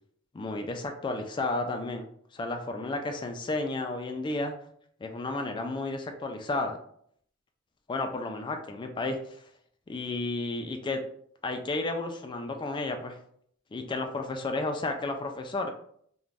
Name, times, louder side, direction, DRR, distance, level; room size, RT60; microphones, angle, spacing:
voice 1, 0.3-2.0 2.3-4.5 5.0-6.8 7.9-9.4 9.9-11.0 11.4-13.2 13.7-15.7, left 2 dB, 20° left, 4 dB, 0.3 m, -32 dB
2.5 x 2.1 x 3.2 m, 0.64 s
head